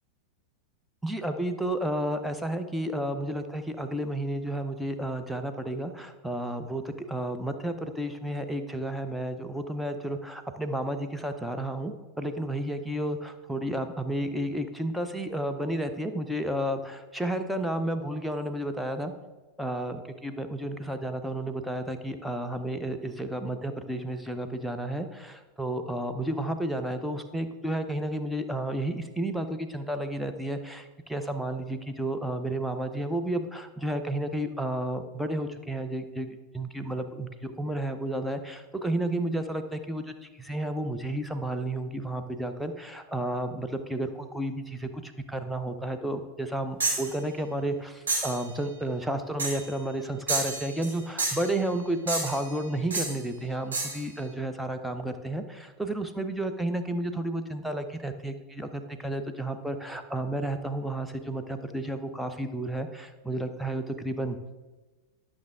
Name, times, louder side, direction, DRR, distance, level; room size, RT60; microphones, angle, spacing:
voice 1, 1.0-19.1 19.6-64.4, right 1 dB, ahead, 6 dB, 0.7 m, -32 dB
sound 1, 46.8-47.1 48.1-48.4 49.4-49.7 50.3-50.9 51.2-51.5 52.1-52.5 52.9-53.1 53.7-54.0, right 3 dB, 70° right, 2.3 m, -29 dB
11.5 x 6.2 x 3.6 m, 1.2 s
figure-of-eight pair, 90°, 0 cm